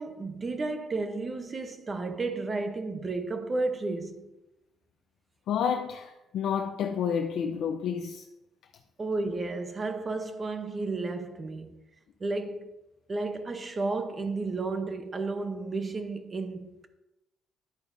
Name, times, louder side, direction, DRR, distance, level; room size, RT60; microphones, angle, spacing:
voice 1, 0.0-4.3 9.0-11.8 12.2-12.7 13.1-16.9, right 3 dB, 25° right, 0.8 m, -32 dB
voice 2, 5.5-8.3, left 7 dB, 70° left, 0.6 m, -30 dB
10.5 x 8.5 x 2.7 m
cardioid pair, 115°, 0 cm